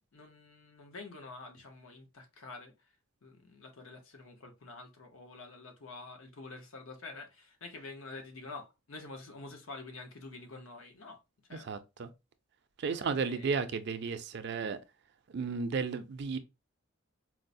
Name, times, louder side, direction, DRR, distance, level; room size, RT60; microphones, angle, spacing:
voice 1, 0.1-2.9 3.2-11.8 12.9-13.6, left 3 dB, 80° left, 0.8 m, -48 dB
voice 2, 11.5-12.1 12.8-14.8 15.3-16.4, right 5 dB, 55° right, 0.4 m, -34 dB
4.5 x 2.0 x 2.5 m
head